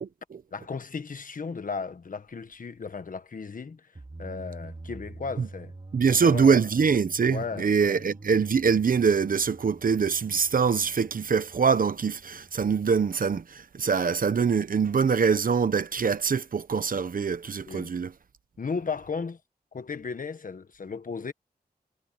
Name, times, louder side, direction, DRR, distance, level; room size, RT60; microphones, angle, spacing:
voice 1, 0.0-0.4 5.4-5.5 5.9-18.1, right 6 dB, 60° right, 1.0 m, -24 dB
voice 2, 0.5-3.9 4.2-5.7 6.1-6.9 7.2-8.0 17.7-17.9 18.6-19.4 19.7-21.3, left 5 dB, 55° left, 1.4 m, -35 dB
sound 1, 4.0-12.8, right 2 dB, 30° right, 4.2 m, -46 dB
wide cardioid pair, 125°, 16 cm